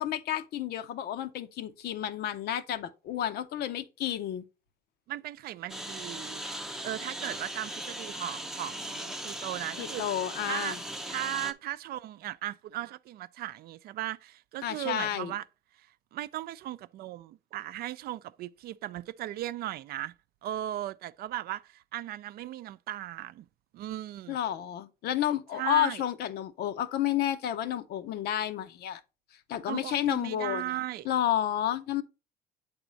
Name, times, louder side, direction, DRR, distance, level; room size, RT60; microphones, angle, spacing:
voice 1, 0.0-4.4 9.8-10.8 14.6-15.3 24.3-29.0 29.5-30.7 31.0-32.0, left 11 dB, 70° left, 0.7 m, -31 dB
voice 2, 5.1-6.4 6.8-10.0 10.5-10.8 11.1-15.4 15.8-20.1 20.4-23.5 23.7-24.4 25.5-26.0 29.7-31.1, right 13 dB, 65° right, 0.4 m, -37 dB
Engine, 5.7-11.5, right 1 dB, 5° right, 0.6 m, -39 dB
8.1 x 3.6 x 4.0 m
cardioid pair, 110°, 17 cm